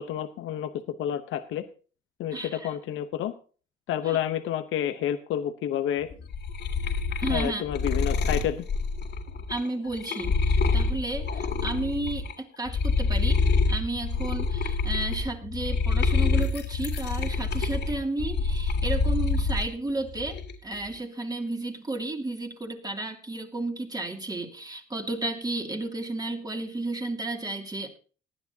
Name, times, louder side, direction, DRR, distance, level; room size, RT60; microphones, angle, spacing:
voice 1, 0.0-1.6 2.2-3.3 3.9-6.1 7.3-8.6, left 10 dB, 85° left, 9 dB, 0.9 m, -29 dB
voice 2, 2.3-2.7 4.0-4.2 7.2-7.6 9.5-28.0, right 2 dB, 20° right, 3 dB, 2.6 m, -33 dB
sound 1, 6.1-12.3 12.7-19.7 20.1-20.7, left 4 dB, 60° left, 2.2 m, -26 dB
18.5 x 10.5 x 2.8 m, 0.38 s
cardioid pair, 90°, 20 cm